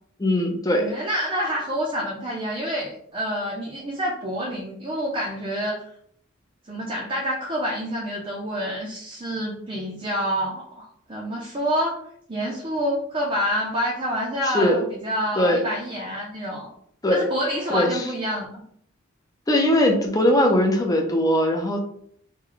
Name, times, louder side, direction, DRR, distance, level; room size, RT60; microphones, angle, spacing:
voice 1, 0.2-0.9 14.4-14.8 15.4-15.6 17.0-17.3 17.7-18.1 19.5-21.8, left 1 dB, 15° left, 2 dB, 0.5 m, -20 dB
voice 2, 0.8-5.9 6.7-12.0 12.3-16.7 17.1-18.6, equal, 25° right, -3 dB, 0.6 m, -27 dB
3.2 x 2.2 x 3.8 m, 0.66 s
head